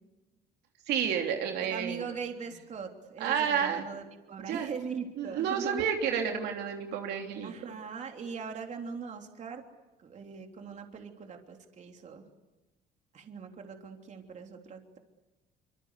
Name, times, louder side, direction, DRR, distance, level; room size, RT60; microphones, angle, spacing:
voice 1, 0.9-2.1 3.2-3.8 4.5-4.7 5.2-7.8, right 7 dB, 80° right, 3 dB, 3.3 m, -30 dB
voice 2, 1.6-5.9 7.4-9.6 10.0-12.2 13.1-15.0, right 6 dB, 45° right, 3 dB, 3.5 m, -40 dB
25.5 x 25.0 x 8.3 m, 1.1 s
cardioid pair, 110°, 17 cm